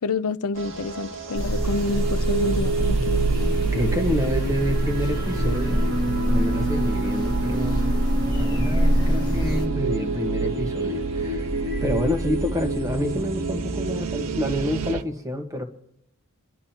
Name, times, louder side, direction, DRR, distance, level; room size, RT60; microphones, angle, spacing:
voice 1, 0.0-3.3, left 3 dB, 80° left, 0.6 m, -28 dB
sound 1, 0.5-14.9, right 2 dB, 60° right, 2.0 m, -29 dB
sound 2, 1.3-9.7, equal, 20° left, 1.4 m, -25 dB
sound 3, 1.6-15.0, right 8 dB, 85° right, 0.5 m, -32 dB
voice 2, 3.7-7.8 8.3-11.5 11.8-15.6, left 1 dB, 15° right, 1.3 m, -28 dB
29.0 x 12.0 x 2.9 m
head